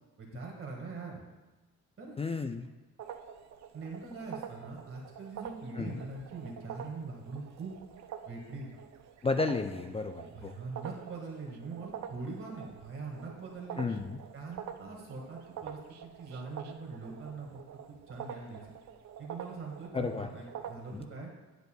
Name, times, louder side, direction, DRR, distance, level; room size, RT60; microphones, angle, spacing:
voice 1, 0.2-1.2 2.0-2.2 3.7-7.8 8.3-8.7 9.8-13.9 14.3-17.6 17.9-18.7 19.2-21.3, right 4 dB, 45° right, -1 dB, 1.7 m, -43 dB
voice 2, 2.2-2.7 5.8-6.0 9.2-10.5 13.8-14.2 19.9-20.3 20.9-21.0, left 4 dB, 20° left, 7 dB, 0.4 m, -32 dB
sound 1, 3.0-21.0, right 8 dB, 65° right, 0.7 m, -46 dB
11.0 x 8.0 x 2.3 m, 1.1 s
cardioid pair, 90°, 30 cm